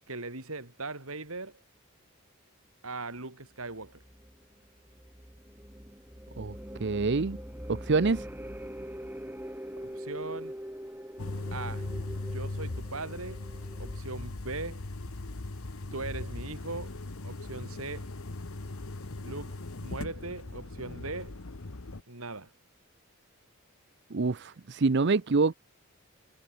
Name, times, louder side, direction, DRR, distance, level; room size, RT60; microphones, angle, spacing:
voice 1, 0.1-1.6 2.8-4.0 9.8-10.5 11.5-12.0 12.3-13.5 13.8-14.8 15.9-16.9 17.2-18.1 19.2-21.4 22.1-22.5, right 3 dB, 75° right, 4.5 m, -39 dB
sound 1, 3.7-14.0, equal, 10° right, 3.8 m, -43 dB
voice 2, 6.8-7.4 7.7-8.3 24.1-25.5, right 4 dB, 50° right, 0.6 m, -26 dB
sound 2, 11.2-22.0, left 2 dB, 70° left, 1.2 m, -39 dB
head